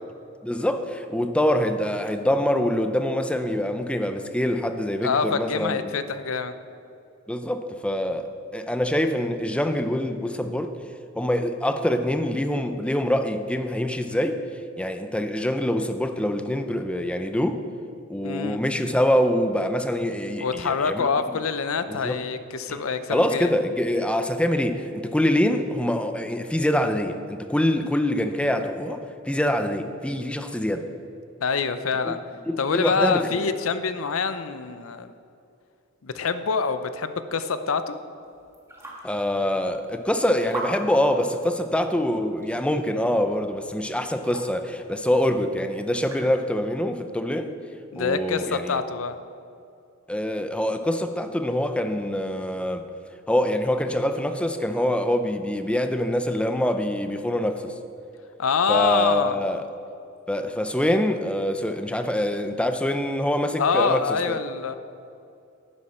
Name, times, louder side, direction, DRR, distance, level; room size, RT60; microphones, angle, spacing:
voice 1, 0.4-5.9 7.3-10.7 11.2-14.4 14.8-17.6 18.1-21.1 21.9-22.2 22.7-22.8 23.1-30.9 32.0-32.1 32.5-33.5 39.0-47.5 48.0-48.8 50.1-52.9 53.3-57.7 58.7-59.6 60.3-64.4, left 1 dB, 5° left, 8 dB, 0.5 m, -25 dB
voice 2, 5.0-6.5 18.2-18.6 20.4-23.5 31.4-32.2 32.6-35.1 36.0-38.0 47.9-49.2 58.4-59.4 63.6-64.7, left 5 dB, 85° left, 11 dB, 0.6 m, -25 dB
sound 1, 38.2-46.7, right 1 dB, 15° right, 1.9 m, -43 dB
11.5 x 9.7 x 4.3 m, 2.6 s
head